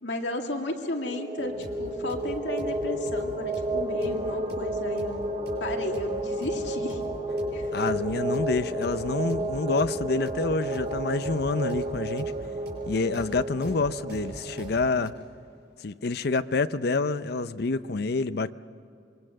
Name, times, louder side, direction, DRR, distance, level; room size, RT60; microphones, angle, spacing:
voice 1, 0.0-5.2 5.6-7.0 7.5-7.7, left 1 dB, 80° left, 2.4 m, -34 dB
sound 1, 0.8-15.2, right 1 dB, 35° right, 1.4 m, -32 dB
sound 2, 1.4-15.1, right 1 dB, 65° right, 6.6 m, -43 dB
voice 2, 7.7-12.3 12.9-15.1 15.8-18.5, left 3 dB, 60° left, 0.6 m, -27 dB
26.0 x 23.5 x 6.5 m
head